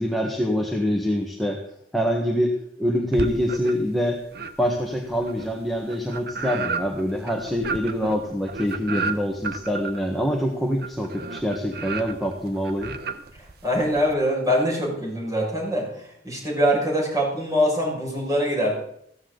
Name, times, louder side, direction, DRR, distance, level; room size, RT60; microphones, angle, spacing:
voice 1, 0.0-1.6 1.9-4.2 4.6-13.0, equal, ahead, -1 dB, 1.5 m, -25 dB
sound 1, 3.1-3.9 4.3-14.1, right 4 dB, 60° right, 1.0 m, -33 dB
voice 2, 13.4-18.7, equal, 20° right, -3 dB, 6.2 m, -23 dB
15.0 x 14.5 x 4.0 m, 0.71 s
head